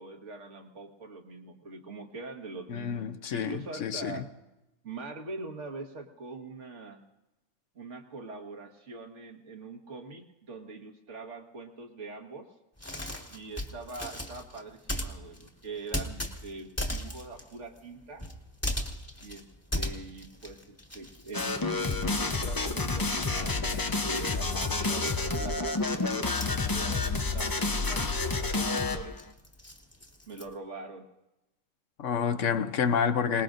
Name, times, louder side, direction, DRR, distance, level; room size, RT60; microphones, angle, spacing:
voice 1, 0.0-3.0 3.3-4.3 4.8-7.0 7.8-12.5 13.3-18.2 19.2-19.5 19.7-26.1 26.7-29.2 30.3-31.1, right 3 dB, 55° right, 1.9 m, -43 dB
voice 2, 2.7-4.2 32.0-33.4, left 7 dB, 60° left, 1.1 m, -29 dB
sound 1, 12.8-22.8 23.0-30.5, left 1 dB, 10° left, 1.5 m, -39 dB
sound 2, 21.3-29.2, left 3 dB, 35° left, 0.3 m, -29 dB
27.0 x 20.0 x 2.6 m
omnidirectional pair, 1.5 m